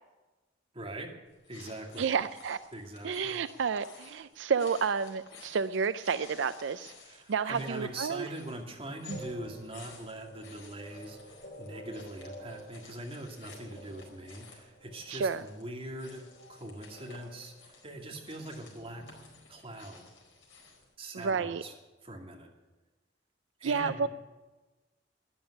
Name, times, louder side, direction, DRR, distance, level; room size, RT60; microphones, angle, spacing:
voice 1, 0.7-1.1 1.5-2.1 2.7-3.4 7.0-19.2 19.5-20.1 21.0-21.7 22.0-22.5 23.6-24.1, right 1 dB, 30° right, 1 dB, 2.3 m, -42 dB
sound 1, 1.3-20.9, left 4 dB, 75° left, 4.5 m, -55 dB
voice 2, 2.0-2.6 3.0-6.9 7.3-8.3 9.1-9.2 15.1-15.4 21.1-21.6 23.6-24.1, right 6 dB, 80° right, 13 dB, 0.4 m, -30 dB
sound 2, 9.1-20.5, right 1 dB, 50° left, 3.5 m, -51 dB
12.5 x 10.5 x 9.9 m, 1.2 s
head